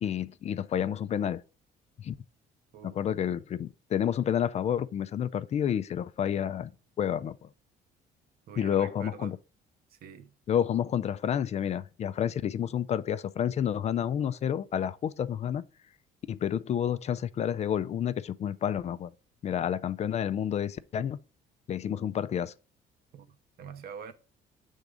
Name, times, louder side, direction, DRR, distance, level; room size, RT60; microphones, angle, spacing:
voice 1, 0.0-1.4 2.0-2.1 2.8-6.7 7.0-7.5 8.6-9.4 10.5-15.6 16.3-19.1 19.4-21.2 21.7-22.5, left 9 dB, 40° left, 0.4 m, -30 dB
voice 2, 8.5-9.3 9.9-10.3 23.1-24.1, right 7 dB, 65° right, 0.8 m, -45 dB
6.8 x 3.6 x 5.0 m
cardioid pair, 110°, 17 cm